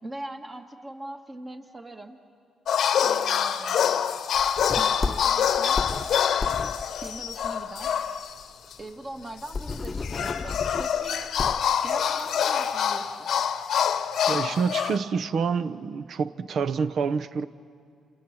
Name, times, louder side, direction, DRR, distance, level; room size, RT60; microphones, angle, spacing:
voice 1, 0.0-2.2 3.0-4.1 4.8-5.8 7.0-8.1 8.8-11.3 11.8-13.3, right 1 dB, 25° right, 1.9 m, -41 dB
sound 1, 2.7-8.4 8.7-8.8 9.7-15.0, left 8 dB, 70° left, 0.9 m, -26 dB
sound 2, 4.3-8.1 8.4-8.5 8.8-8.9 9.2-11.7, left 4 dB, 30° left, 0.9 m, -33 dB
voice 2, 14.3-17.5, right 5 dB, 60° right, 0.8 m, -27 dB
28.5 x 28.5 x 6.0 m
cardioid pair, 90°, 0 cm